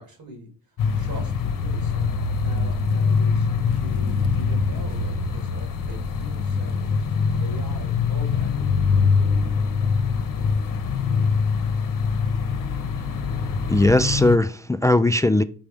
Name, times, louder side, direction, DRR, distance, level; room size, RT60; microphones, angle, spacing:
voice 1, 0.0-8.5, right 1 dB, 80° right, 3.1 m, -42 dB
sound 1, 0.8-14.4, left 5 dB, 65° left, 0.9 m, -23 dB
voice 2, 13.7-15.4, left 1 dB, 10° left, 0.3 m, -18 dB
6.0 x 3.5 x 5.1 m
cardioid pair, 60°, 35 cm